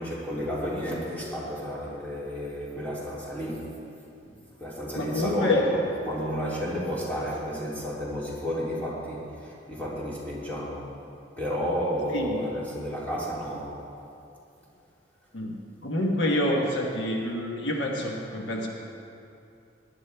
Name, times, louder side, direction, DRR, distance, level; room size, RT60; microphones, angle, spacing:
voice 1, 0.0-3.7 4.6-10.9 11.4-13.8, equal, 10° left, -8 dB, 3.0 m, -32 dB
voice 2, 5.0-5.7 12.1-12.4 15.3-18.7, left 1 dB, 75° left, 0 dB, 1.3 m, -27 dB
19.0 x 11.0 x 3.4 m, 2.7 s
head